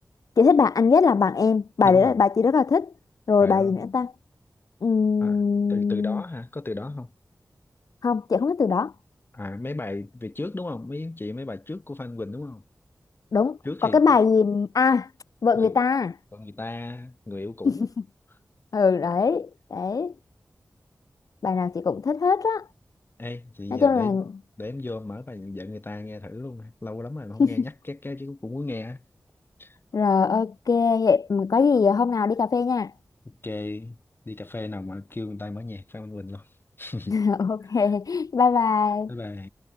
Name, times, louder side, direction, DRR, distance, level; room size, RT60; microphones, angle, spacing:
voice 1, 0.4-2.9 3.3-4.1 4.8-6.2 8.0-8.9 13.3-15.1 15.4-16.1 17.6-17.7 18.7-20.1 21.4-22.6 23.7-24.2 27.4-27.5 29.9-32.9 37.1-39.1, left 5 dB, 65° left, 0.5 m, -21 dB
voice 2, 1.8-2.2 3.4-3.8 5.2-5.4 5.7-7.1 9.3-12.6 13.6-14.0 15.5-15.8 16.3-17.9 23.2-24.2 24.6-29.0 29.6-29.8 33.2-34.0 34.3-36.5 36.8-37.2 39.1-39.5, left 2 dB, 35° left, 6.0 m, -35 dB
wide cardioid pair, 85°, 6 cm